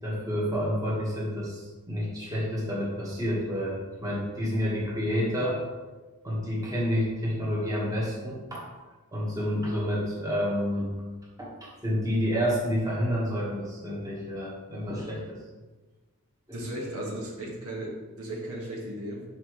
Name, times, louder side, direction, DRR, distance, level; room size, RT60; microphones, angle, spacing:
voice 1, 0.0-5.6 6.2-8.6 9.1-10.9 11.4-15.4 16.5-16.6 16.9-17.1, equal, 15° right, -5 dB, 1.5 m, -29 dB
voice 2, 16.5-19.2, right 1 dB, 85° right, -2 dB, 1.5 m, -36 dB
6.0 x 5.7 x 3.1 m, 1.3 s
head